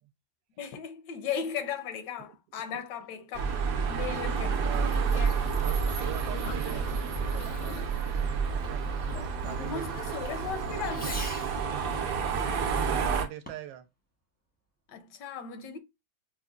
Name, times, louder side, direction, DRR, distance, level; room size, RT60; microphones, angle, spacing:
voice 1, 0.6-3.5 3.9-5.4 9.5-11.3 14.9-15.8, left 7 dB, 75° left, 1.2 m, -37 dB
sound 1, 3.3-13.3, right 5 dB, 60° right, 1.0 m, -30 dB
sound 2, 4.6-6.1 6.4-11.2, left 4 dB, 60° left, 0.7 m, -46 dB
Fireworks, 4.6-11.7 13.3-13.8, equal, 10° left, 0.4 m, -48 dB
voice 2, 4.6-5.0 5.6-7.9 8.5-8.8 9.4-10.2 11.8-13.9, right 13 dB, 80° right, 1.3 m, -43 dB
5.4 x 2.1 x 2.3 m
omnidirectional pair, 1.9 m